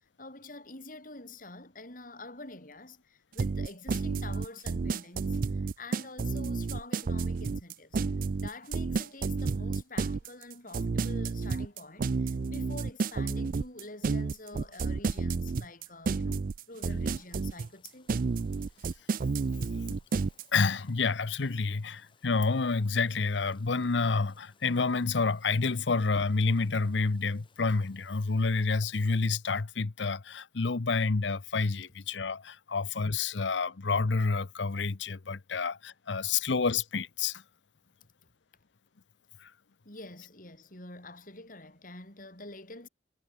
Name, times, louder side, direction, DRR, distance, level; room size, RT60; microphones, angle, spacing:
voice 1, 0.2-8.0 8.4-18.1 39.8-42.9, left 2 dB, 50° left, 5.9 m, -47 dB
sound 1, 3.4-20.4, right 4 dB, 50° right, 0.4 m, -30 dB
sound 2, 16.7-29.3, left 5 dB, 30° left, 6.0 m, -66 dB
voice 2, 20.5-37.4 39.4-39.5, left 4 dB, 90° left, 0.8 m, -29 dB
head